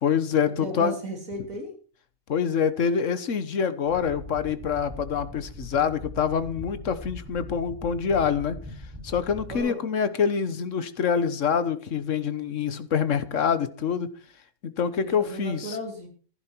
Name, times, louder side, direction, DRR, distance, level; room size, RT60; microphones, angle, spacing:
voice 1, 0.0-0.9 2.3-8.6 9.0-14.1 14.6-15.8, left 7 dB, 60° left, 1.4 m, -26 dB
voice 2, 0.6-1.7 9.5-9.8 15.0-16.1, equal, 75° right, 3.7 m, -35 dB
sound 1, 3.9-9.6, left 1 dB, 15° right, 5.6 m, -41 dB
14.5 x 11.5 x 4.5 m
omnidirectional pair, 1.5 m